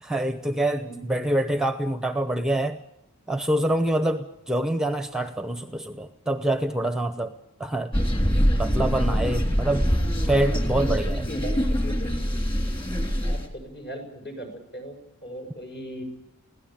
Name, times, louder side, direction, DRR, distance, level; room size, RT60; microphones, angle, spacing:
voice 1, 0.0-2.8 3.3-7.3 7.6-7.9 8.6-9.9 10.2-11.2, right 1 dB, 5° right, 9 dB, 0.8 m, -26 dB
sound 1, 7.9-13.5, equal, 20° left, 3.3 m, -24 dB
voice 2, 9.9-12.2 13.2-16.0, equal, 50° left, 4 dB, 6.4 m, -39 dB
23.0 x 16.5 x 8.8 m, 0.84 s
head